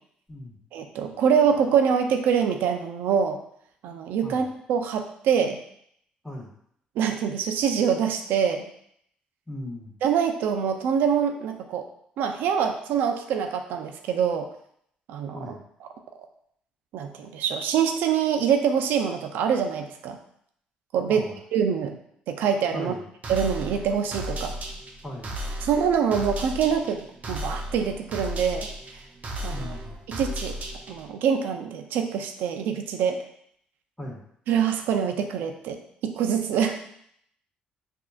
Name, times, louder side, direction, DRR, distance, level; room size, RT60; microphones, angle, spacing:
voice 1, 0.7-3.4 3.8-5.6 7.0-8.7 10.0-11.8 12.2-14.5 15.1-15.5 16.9-20.2 20.9-21.3 21.5-22.0 22.3-23.0 23.3-24.5 25.6-28.7 29.4-29.8 30.1-30.5 30.9-33.2 34.5-36.8, right 7 dB, 80° right, 5 dB, 0.5 m, -25 dB
voice 2, 9.5-9.9 15.3-15.6 21.1-21.4 22.7-23.0 25.0-25.4 29.5-30.0 34.0-34.2, left 1 dB, 5° left, -3 dB, 1.7 m, -37 dB
sound 1, 23.2-31.1, equal, 50° right, 0.8 m, -35 dB
6.0 x 2.8 x 2.5 m, 0.69 s
supercardioid pair, 70°, 3 cm